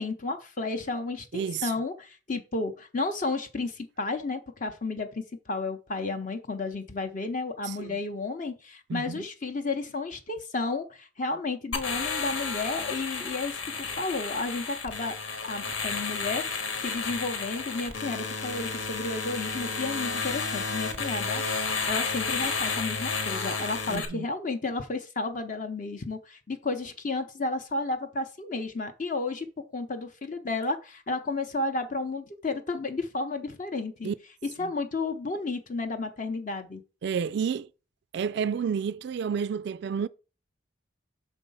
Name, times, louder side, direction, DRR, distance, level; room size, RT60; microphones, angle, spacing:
voice 1, 0.0-15.1 15.4-29.5 29.7-34.1 34.6-36.8, left 3 dB, 40° left, 0.7 m, -32 dB
voice 2, 1.3-1.7 7.6-8.0 8.9-9.2 23.9-24.3 34.0-34.1 34.6-34.7 37.0-37.7 38.1-40.1, right 6 dB, 55° right, 0.3 m, -30 dB
sound 1, 11.7-24.1, left 4 dB, 80° left, 1.3 m, -32 dB
6.3 x 4.3 x 5.4 m
head